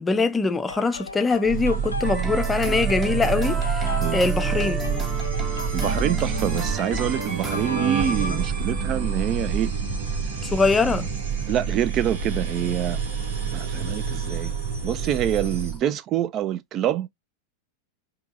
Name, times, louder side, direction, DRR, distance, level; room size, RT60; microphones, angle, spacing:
voice 1, 0.0-4.8 10.4-11.1, left 4 dB, 15° left, 0.6 m, -23 dB
sound 1, 0.7-8.5, left 3 dB, 80° left, 0.5 m, -37 dB
sound 2, 1.5-15.8, right 6 dB, 60° right, 2.0 m, -27 dB
sound 3, 2.0-8.9, right 2 dB, 15° right, 0.9 m, -33 dB
voice 2, 5.5-9.7 11.5-13.0 13.5-14.5 14.8-17.1, right 11 dB, 35° right, 0.3 m, -26 dB
5.3 x 2.8 x 2.3 m
figure-of-eight pair, 90°, 0 cm